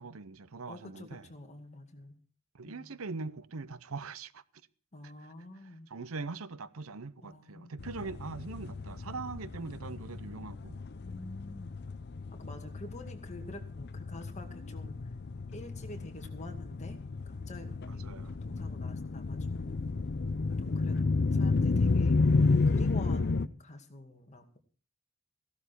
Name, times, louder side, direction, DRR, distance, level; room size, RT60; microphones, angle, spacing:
voice 1, 0.0-1.3 2.5-4.4 5.0-5.1 5.9-10.8 18.0-18.4, right 4 dB, 75° right, 0.7 m, -42 dB
voice 2, 0.7-2.2 2.7-3.0 4.9-5.9 7.2-7.8 11.0-11.8 12.3-15.1 15.5-17.0 17.3-19.8 20.6-21.0 21.3-22.2 22.7-24.6, left 1 dB, 35° left, 2.3 m, -47 dB
sound 1, 7.8-23.5, left 3 dB, 50° left, 0.6 m, -31 dB
16.0 x 12.5 x 4.5 m
head